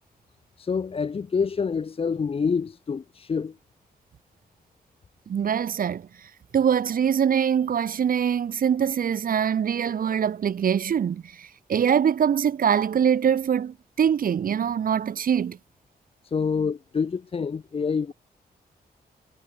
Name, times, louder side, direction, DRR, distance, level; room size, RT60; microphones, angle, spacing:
voice 1, 0.6-3.6 16.2-18.1, left 5 dB, 35° left, 1.0 m, -27 dB
voice 2, 5.3-6.1 6.5-15.6, right 8 dB, 65° right, 1.7 m, -23 dB
wide cardioid pair, 140°, 16 cm